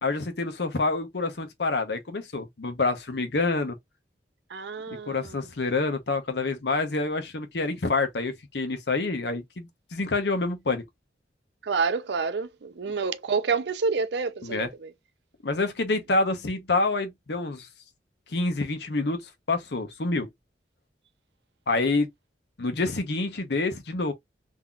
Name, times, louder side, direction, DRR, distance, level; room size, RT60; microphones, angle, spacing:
voice 1, 0.0-3.8 5.1-10.8 14.4-14.7 15.4-17.7 18.3-19.2 19.5-20.3 21.7-22.1 22.6-24.1, left 3 dB, 70° left, 0.8 m, -27 dB
voice 2, 4.5-5.4 11.6-14.9, right 5 dB, 70° right, 0.5 m, -28 dB
3.8 x 2.7 x 2.3 m
head